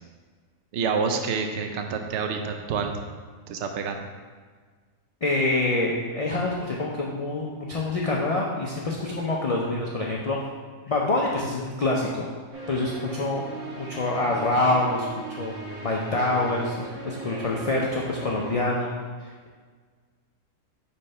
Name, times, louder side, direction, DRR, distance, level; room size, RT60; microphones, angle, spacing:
voice 1, 0.7-3.0 3.5-4.1, right 5 dB, 65° right, 5 dB, 0.9 m, -28 dB
voice 2, 5.2-10.5 10.9-12.3 12.7-13.5 13.8-15.1 15.4-15.5 15.8-18.9 19.2-19.5, left 2 dB, 60° left, -2 dB, 0.3 m, -26 dB
sound 1, 12.5-18.6, right 2 dB, 30° right, 1.1 m, -38 dB
5.6 x 3.2 x 5.3 m, 1.5 s
omnidirectional pair, 1.4 m